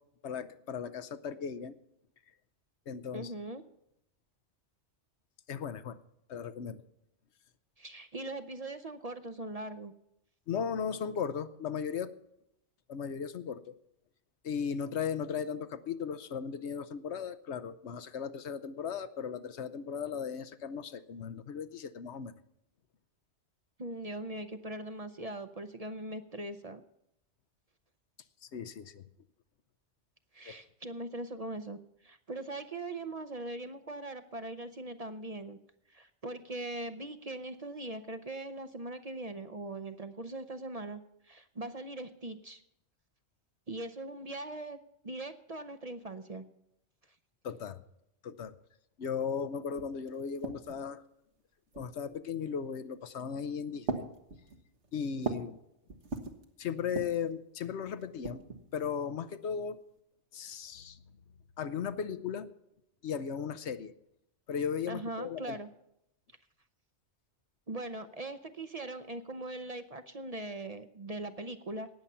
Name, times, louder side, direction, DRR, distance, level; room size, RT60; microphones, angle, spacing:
voice 1, 0.2-1.8 2.9-3.3 5.5-6.0 6.3-6.8 10.5-12.1 12.9-13.7 14.4-22.3 28.4-29.0 30.5-30.6 47.4-47.8 48.2-48.5 49.0-51.0 51.7-54.0 54.9-55.6 56.6-58.4 58.7-59.8 60.3-61.0 61.6-62.5 63.0-63.9 64.5-65.5, left 7 dB, 70° left, 13 dB, 1.0 m, -36 dB
voice 2, 3.1-3.6 7.8-9.9 23.8-26.8 30.3-35.6 35.9-42.6 43.7-44.8 45.0-46.4 64.9-65.7 67.7-71.9, right 2 dB, 40° right, 9 dB, 0.7 m, -41 dB
sound 1, 49.4-49.5 49.7-50.9 51.7-52.2 53.0-53.4 53.8-55.6 55.9-56.4 56.8-57.3 58.0-59.0, right 3 dB, 75° right, 1.7 m, -40 dB
18.5 x 7.3 x 5.5 m, 0.79 s
omnidirectional pair, 1.2 m